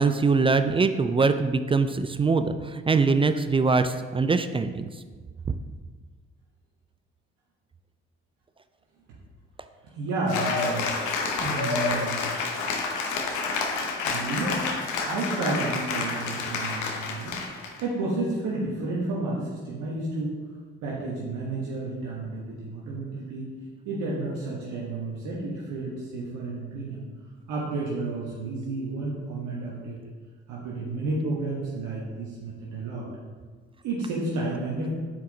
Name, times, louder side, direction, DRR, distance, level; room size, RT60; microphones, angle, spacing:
voice 1, 0.0-4.9 5.5-5.6, right 4 dB, 20° right, 10 dB, 0.3 m, -23 dB
voice 2, 9.9-10.8 11.4-12.1 14.0-14.6 15.0-17.4 17.8-20.3 20.8-23.5 23.8-27.0 27.5-30.0 30.5-33.1 33.8-34.9, right 2 dB, 70° right, -5 dB, 1.2 m, -31 dB
Cheering / Applause, 10.3-17.8, left 4 dB, 75° left, 0.8 m, -29 dB
5.8 x 4.7 x 3.9 m, 1.5 s
hypercardioid pair, 50°, 31 cm